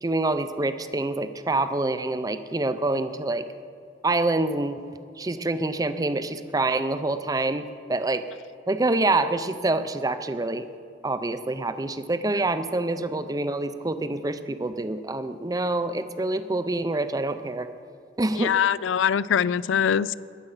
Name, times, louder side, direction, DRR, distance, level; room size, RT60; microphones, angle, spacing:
voice 1, 0.0-3.5 4.0-4.8 5.2-8.3 8.7-10.7 11.0-17.7 18.2-18.6, right 2 dB, 20° right, 11 dB, 0.5 m, -26 dB
voice 2, 18.4-20.1, left 8 dB, 75° left, 19 dB, 0.4 m, -23 dB
21.5 x 7.8 x 5.7 m, 2.4 s
head